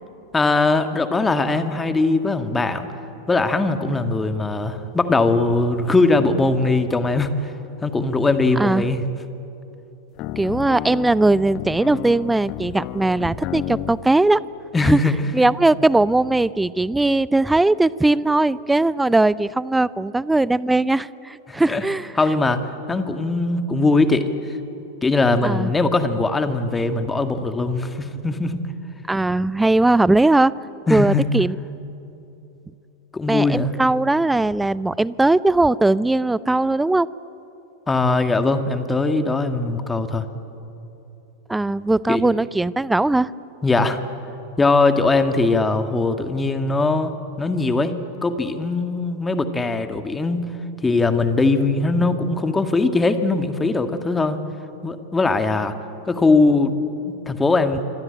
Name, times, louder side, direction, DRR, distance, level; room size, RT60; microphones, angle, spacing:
voice 1, 0.3-2.9 3.3-7.5 7.8-9.0 14.7-15.2 21.5-21.8 22.2-24.3 25.0-28.7 30.9-31.3 33.1-33.7 37.9-40.3 42.1-42.2 43.6-44.0 44.6-47.1 47.4-47.9 48.2-50.5 50.8-54.4 54.8-55.7 56.1-56.7 57.0-57.8, left 3 dB, 10° left, 8 dB, 1.9 m, -20 dB
voice 2, 8.6-8.9 10.4-14.4 14.8-15.0 15.3-22.1 25.4-25.7 29.1-30.5 30.9-31.5 33.3-37.1 41.5-43.3, right 2 dB, 5° right, 21 dB, 0.5 m, -19 dB
sound 1, 10.2-14.0, left 13 dB, 40° left, 1.0 m, -32 dB
25.5 x 25.0 x 8.8 m, 3.0 s
figure-of-eight pair, 90°, 0 cm